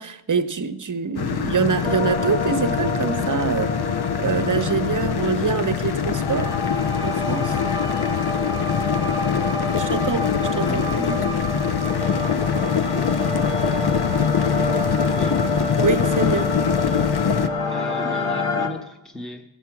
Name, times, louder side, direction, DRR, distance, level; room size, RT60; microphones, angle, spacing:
voice 1, 0.0-3.8 4.2-6.5 7.0-7.6 9.8-11.4 15.8-16.5, right 6 dB, 40° right, 0.8 m, -25 dB
sound 1, 1.2-17.5, left 7 dB, 50° left, 0.7 m, -24 dB
sound 2, 1.8-18.7, left 3 dB, 85° left, 1.8 m, -27 dB
voice 2, 17.3-19.4, left 1 dB, ahead, 1.0 m, -37 dB
14.5 x 7.8 x 5.9 m
wide cardioid pair, 70°, 49 cm